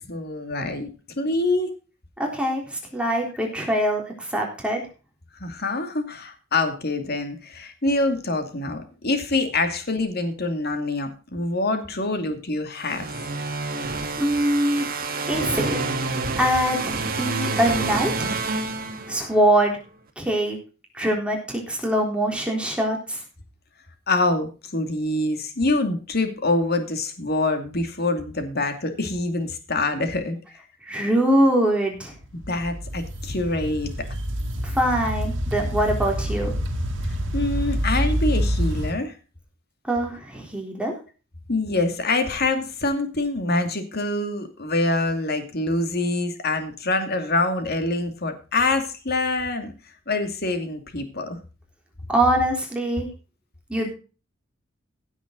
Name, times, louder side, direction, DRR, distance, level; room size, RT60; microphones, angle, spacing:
voice 1, 0.1-0.9 1.2-1.7 5.4-13.1 24.1-30.4 32.5-33.9 37.3-39.1 41.5-49.7 50.1-51.4, left 2 dB, 55° left, 7 dB, 2.5 m, -25 dB
voice 2, 2.2-4.8 13.6-13.7 14.2-14.9 15.3-15.8 16.4-18.3 19.1-19.8 20.2-20.6 20.9-23.2 30.8-32.1 34.6-36.6 39.9-40.9 52.1-53.1 53.7-54.0, right 1 dB, 5° right, 0 dB, 3.7 m, -23 dB
sound 1, 12.8-19.5, right 3 dB, 50° right, 2.0 m, -28 dB
sound 2, 32.0-38.9, equal, 70° right, 2.3 m, -27 dB
16.5 x 8.2 x 3.9 m, 0.34 s
head